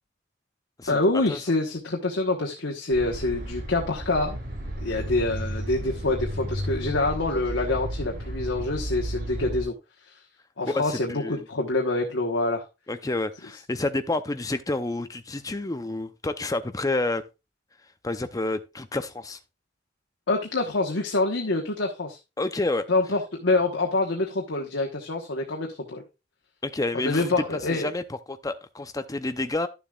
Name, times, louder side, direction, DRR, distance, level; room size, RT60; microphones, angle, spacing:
voice 1, 0.9-4.4 4.8-9.7 10.1-10.2 10.6-12.6 20.3-22.2 22.9-26.0 26.9-27.9, left 2 dB, 85° left, 1.2 m, -26 dB
sound 1, 2.9-9.6, right 1 dB, 50° right, 3.5 m, -33 dB
voice 2, 10.7-11.5 12.9-17.2 18.0-19.4 22.4-22.9 26.6-29.7, left 2 dB, 20° left, 0.6 m, -29 dB
11.5 x 7.0 x 2.4 m
head